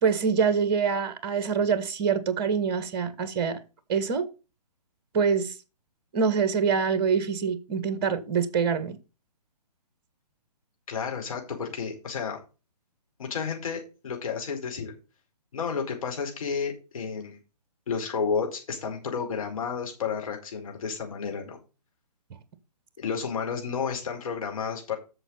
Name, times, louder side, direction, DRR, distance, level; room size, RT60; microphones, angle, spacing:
voice 1, 0.0-3.6 3.9-4.2 5.1-5.5 6.1-9.0, right 6 dB, 35° right, 1.7 m, -25 dB
voice 2, 10.9-12.4 13.2-14.9 15.5-17.4 17.9-21.6 23.0-25.0, left 6 dB, 55° left, 5.0 m, -31 dB
8.0 x 6.9 x 5.7 m
figure-of-eight pair, 135°, 21 cm